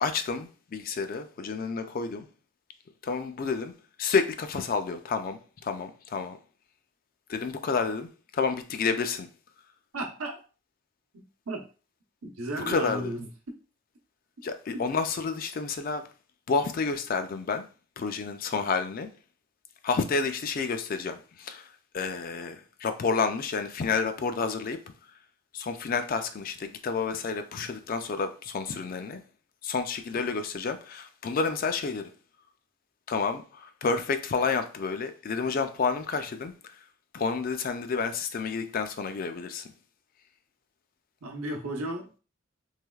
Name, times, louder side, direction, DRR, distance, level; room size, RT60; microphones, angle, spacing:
voice 1, 0.0-2.3 3.0-3.7 4.0-6.4 7.3-9.3 12.7-13.1 14.4-16.1 16.5-17.7 18.0-19.1 19.8-24.8 25.5-29.2 29.6-32.1 33.1-36.9 37.1-39.7, left 4 dB, 40° left, 0.3 m, -30 dB
voice 2, 9.9-10.3 11.1-11.6 12.2-13.3 41.2-42.2, right 1 dB, 90° right, 0.8 m, -34 dB
3.2 x 3.0 x 2.3 m
head